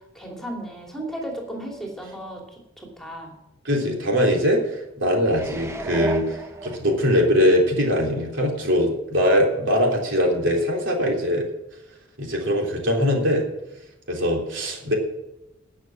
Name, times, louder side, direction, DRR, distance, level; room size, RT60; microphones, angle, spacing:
voice 1, 0.1-2.4 2.8-3.4, right 1 dB, ahead, 0 dB, 2.7 m, -34 dB
voice 2, 3.7-11.5 12.2-13.4 14.1-15.0, equal, 65° right, 0 dB, 3.5 m, -21 dB
sound 1, 5.2-7.3 7.8-7.9, right 3 dB, 15° right, 1.1 m, -33 dB
18.5 x 6.6 x 6.2 m, 0.90 s
head